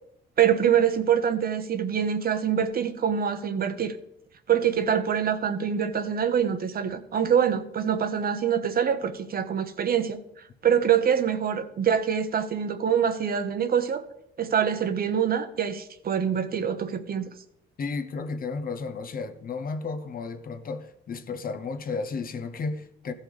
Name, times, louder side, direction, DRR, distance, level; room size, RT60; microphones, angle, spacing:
voice 1, 0.4-4.0 4.5-10.2 10.6-14.0 14.4-17.3, right 8 dB, 50° right, 1.0 m, -25 dB
voice 2, 17.8-23.1, left 4 dB, 45° left, 0.9 m, -33 dB
15.0 x 5.6 x 5.1 m
cardioid pair, 110°, 20 cm